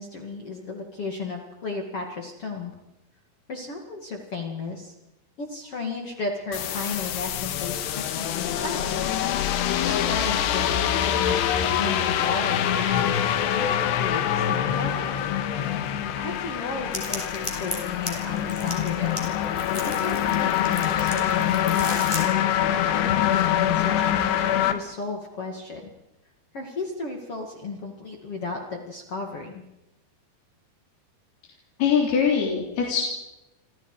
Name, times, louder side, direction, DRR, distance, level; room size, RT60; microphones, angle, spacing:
voice 1, 0.0-2.8 3.5-4.9 5.4-8.9 9.4-13.2 13.5-13.7 14.0-15.2 16.1-19.2 19.8-25.9 26.5-29.6, left 3 dB, 40° left, 1 dB, 2.8 m, -34 dB
sound 1, 6.5-24.7, left 10 dB, 85° left, 3.4 m, -25 dB
sound 2, 16.9-22.2, left 1 dB, 5° left, 5.0 m, -36 dB
voice 2, 31.8-33.0, left 7 dB, 65° left, -2 dB, 5.2 m, -22 dB
29.0 x 26.5 x 5.0 m, 0.98 s
omnidirectional pair, 4.9 m